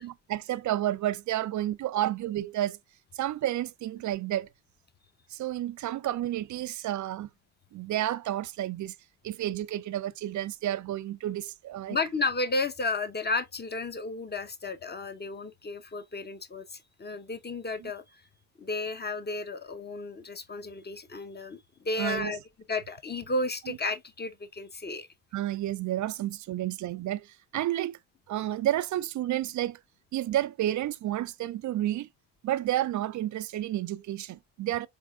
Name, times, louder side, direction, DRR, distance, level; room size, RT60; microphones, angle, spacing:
voice 1, 0.0-2.8 3.1-4.5 5.3-7.3 7.7-8.9 9.2-12.0 17.8-17.9 22.0-22.4 23.7-23.8 25.3-28.0 28.3-29.8 30.1-32.1 32.4-34.9, right 13 dB, 45° right, 0.4 m, -31 dB
voice 2, 11.9-18.0 18.6-21.6 21.8-22.4 22.7-25.1, left 3 dB, 25° left, 0.8 m, -33 dB
4.0 x 3.6 x 2.3 m
supercardioid pair, 75°, 42 cm